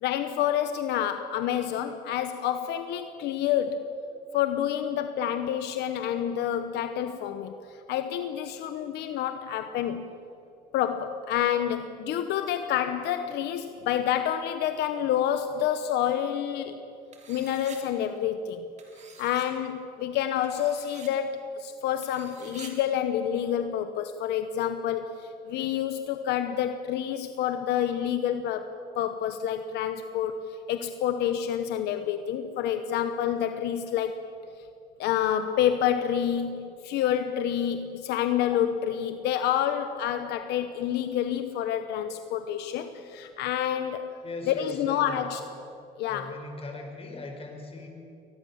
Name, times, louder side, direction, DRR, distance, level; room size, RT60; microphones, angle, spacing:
voice 1, 0.0-3.9 4.3-10.1 10.7-16.8 17.3-18.6 19.2-34.2 35.0-44.2 44.5-45.4 46.0-46.4, left 10 dB, 80° left, 9 dB, 1.1 m, -28 dB
sound 1, 17.1-17.8 18.8-19.5 20.4-21.1 22.0-22.7, right 6 dB, 40° right, 3.6 m, -48 dB
voice 2, 44.2-45.2 46.1-47.9, left 2 dB, 35° left, 3 dB, 5.0 m, -39 dB
23.0 x 20.0 x 7.2 m, 2.6 s
cardioid pair, 110°, 17 cm